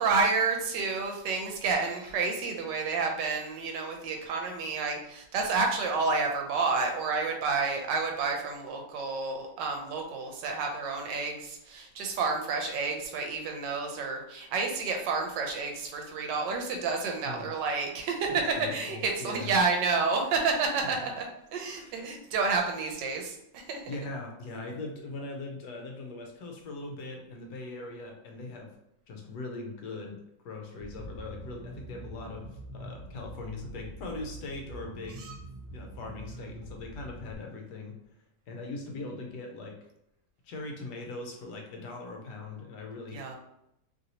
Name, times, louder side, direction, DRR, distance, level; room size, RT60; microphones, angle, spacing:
voice 1, 0.0-18.4 18.7-21.3 21.5-23.8 35.2-35.3 43.1-43.4, right 4 dB, 75° right, 2 dB, 1.2 m, -30 dB
voice 2, 17.2-17.6 18.3-19.5 20.8-20.9 21.7-22.1 23.9-28.7 29.1-35.3 35.7-38.0 38.5-39.8 40.4-43.4, left 3 dB, 75° left, 2 dB, 1.2 m, -40 dB
sound 1, 30.8-37.3, right 2 dB, 55° right, 0.5 m, -45 dB
3.1 x 2.6 x 2.8 m, 0.78 s
omnidirectional pair, 1.9 m